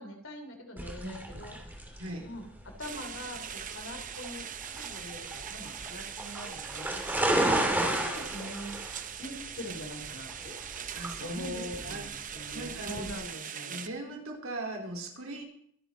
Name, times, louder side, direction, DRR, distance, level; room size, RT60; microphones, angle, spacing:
voice 1, 0.0-8.8 9.2-10.6 11.2-13.8, left 1 dB, 55° left, 4 dB, 3.1 m, -43 dB
sound 1, 0.8-13.1, right 1 dB, 10° right, 2.6 m, -33 dB
voice 2, 1.0-1.5 2.0-2.3 10.9-12.0 12.3-13.1 13.6-15.4, right 2 dB, 70° right, 0 dB, 4.1 m, -40 dB
sound 2, 2.8-13.9, right 8 dB, 35° right, 0.8 m, -41 dB
23.5 x 10.0 x 4.1 m, 0.68 s
head